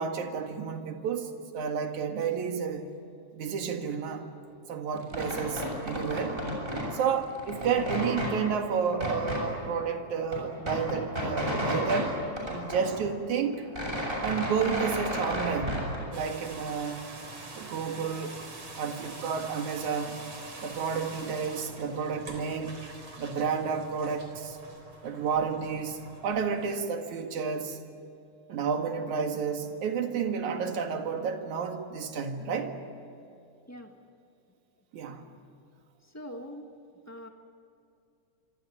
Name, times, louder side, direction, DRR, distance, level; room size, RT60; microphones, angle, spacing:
voice 1, 0.0-2.9 3.3-4.2 4.7-6.4 6.9-12.2 12.5-13.7 14.2-15.9 16.1-17.1 17.6-18.4 18.8-20.2 20.6-22.8 23.2-24.6 25.0-27.8 28.5-32.8 34.9-35.2, right 6 dB, 70° right, 3.2 m, -31 dB
sound 1, 5.0-6.9 7.2-8.3 8.9-9.4 9.9-10.0 10.2-12.0 12.4-13.3 13.5-16.0, equal, 15° right, 7.3 m, -32 dB
sound 2, 16.1-26.8, right 2 dB, 45° right, 4.4 m, -45 dB
voice 2, 36.0-36.6 37.1-37.3, equal, 20° left, 0.4 m, -42 dB
26.0 x 25.0 x 8.7 m
omnidirectional pair, 3.6 m